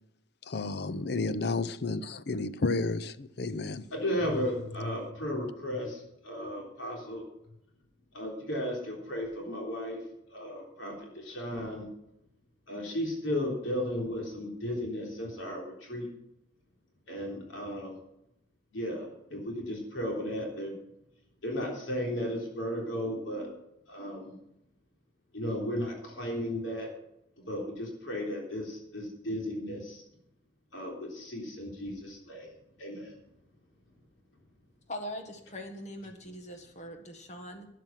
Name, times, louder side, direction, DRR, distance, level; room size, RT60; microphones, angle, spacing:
voice 1, 0.5-3.9, left 3 dB, 55° left, 0.6 m, -31 dB
voice 2, 3.9-7.2 8.1-10.0 10.3-11.9 12.7-16.1 17.1-17.9 18.7-20.7 21.4-23.5 23.9-24.3 25.3-26.9 27.4-30.0 30.7-32.5 32.8-33.1, equal, 85° left, 3.5 m, -35 dB
voice 3, 34.9-37.7, equal, 35° left, 1.6 m, -41 dB
12.5 x 9.2 x 5.8 m
head